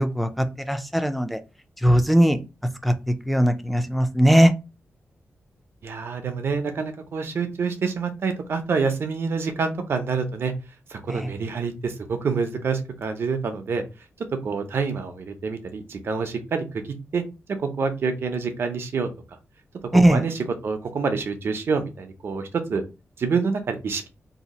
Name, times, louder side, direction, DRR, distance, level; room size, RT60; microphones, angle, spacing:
voice 1, 0.0-1.4 1.8-2.4 2.8-2.9 3.3-4.5 11.1-11.3 19.9-20.2, right 1 dB, ahead, 7 dB, 0.3 m, -19 dB
voice 2, 5.8-10.5 10.9-13.8 14.4-16.8 17.1-17.2 17.6-19.1 19.9-22.8 23.2-24.1, right 5 dB, 55° right, 7 dB, 0.6 m, -27 dB
2.7 x 2.4 x 4.0 m, 0.28 s
wide cardioid pair, 170°, 5 cm